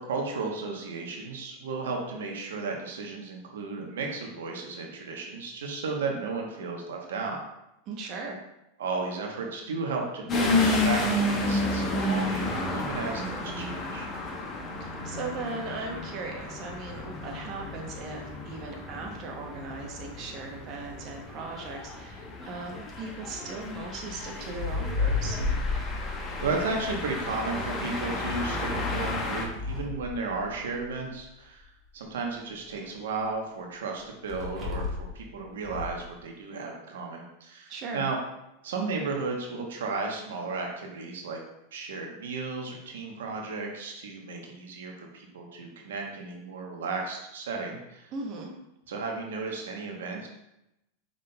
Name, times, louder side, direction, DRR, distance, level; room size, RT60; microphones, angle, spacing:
voice 1, 0.0-7.4 8.8-14.1 25.8-31.7 31.9-38.2 38.6-41.4 41.7-48.1 48.9-50.3, right 4 dB, 85° right, 1 dB, 0.9 m, -34 dB
voice 2, 7.9-8.4 14.8-25.4 37.7-38.1 48.1-48.6, right 3 dB, 45° right, 1 dB, 0.7 m, -38 dB
sound 1, 10.3-29.5, left 2 dB, 30° left, 0.9 m, -32 dB
sound 2, 23.6-27.7 28.7-31.0 34.3-35.2 35.6-36.1, left 3 dB, 25° right, 1.5 m, -33 dB
5.4 x 3.7 x 2.2 m, 0.87 s
hypercardioid pair, 120°, 0 cm